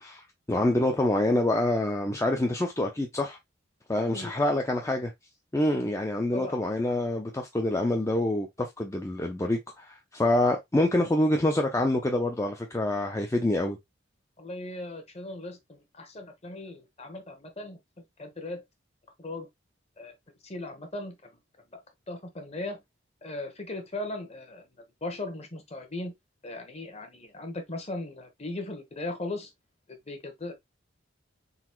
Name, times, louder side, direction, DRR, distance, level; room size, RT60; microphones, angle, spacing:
voice 1, 0.0-3.4 3.9-5.1 5.5-13.8, left 1 dB, 15° left, 0.4 m, -26 dB
voice 2, 14.4-17.8 18.2-18.6 19.2-19.5 20.0-20.1 20.4-21.3 21.7-21.8 22.1-22.8 23.2-24.6 25.0-26.1 26.4-29.5 29.9-30.5, left 2 dB, 35° left, 1.0 m, -38 dB
4.0 x 2.4 x 4.4 m
head